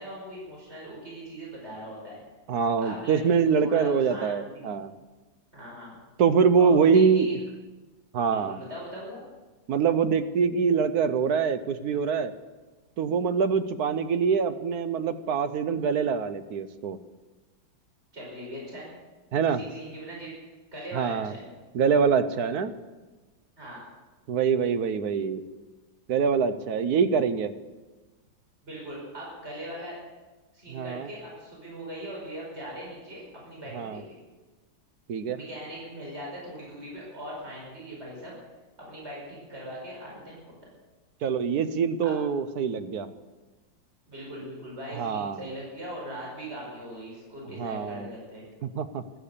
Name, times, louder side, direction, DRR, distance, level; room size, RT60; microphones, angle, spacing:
voice 1, 0.0-2.2 2.8-4.7 5.5-6.0 6.6-7.4 8.3-9.2 18.1-18.9 19.4-20.3 20.7-21.5 23.6-23.8 28.6-30.0 30.5-34.2 35.3-38.4 38.8-40.5 42.0-42.2 44.1-48.4, equal, 35° right, -3 dB, 5.5 m, -40 dB
voice 2, 2.5-4.9 6.2-7.3 8.1-8.6 9.7-12.3 13.0-17.0 19.3-19.6 20.9-21.3 21.7-22.7 24.3-25.4 26.1-27.5 30.7-31.1 33.7-34.0 35.1-35.4 41.2-43.1 44.9-45.4 47.6-48.1 48.6-49.0, right 6 dB, 60° right, 11 dB, 1.2 m, -24 dB
15.5 x 13.0 x 6.8 m, 1.2 s
omnidirectional pair, 2.0 m